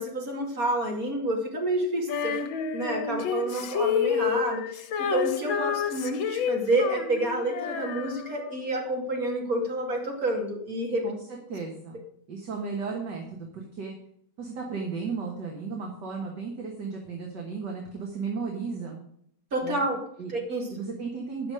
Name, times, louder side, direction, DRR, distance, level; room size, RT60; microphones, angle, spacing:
voice 1, 0.0-2.4 2.7-11.1 19.5-20.7, right 1 dB, 45° right, -1 dB, 3.0 m, -29 dB
Female singing, 2.1-8.6, left 7 dB, 80° left, 1.6 m, -29 dB
voice 2, 11.0-12.0 12.3-14.0 14.4-19.0 19.6-19.8 20.2-20.3 20.7-21.5, right 4 dB, 60° right, 0 dB, 2.1 m, -34 dB
9.8 x 6.2 x 6.3 m, 0.69 s
omnidirectional pair, 2.1 m